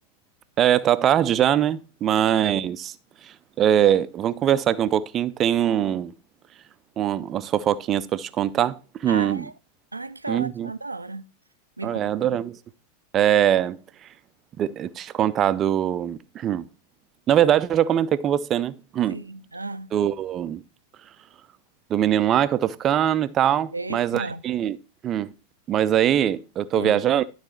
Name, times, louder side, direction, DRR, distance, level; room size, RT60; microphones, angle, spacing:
voice 1, 0.6-2.9 3.2-6.1 7.0-9.5 10.3-10.7 11.8-12.6 13.1-14.1 14.6-16.7 17.3-19.2 19.9-20.6 21.9-24.8 25.0-25.3 25.7-27.3, right 10 dB, 30° right, 0.5 m, -22 dB
voice 2, 9.1-9.5 9.9-11.2 11.8-12.1 19.1-19.9 23.7-24.4 26.7-27.0, right 3 dB, 80° right, 0.4 m, -34 dB
12.0 x 4.1 x 4.4 m
figure-of-eight pair, 90°, 0 cm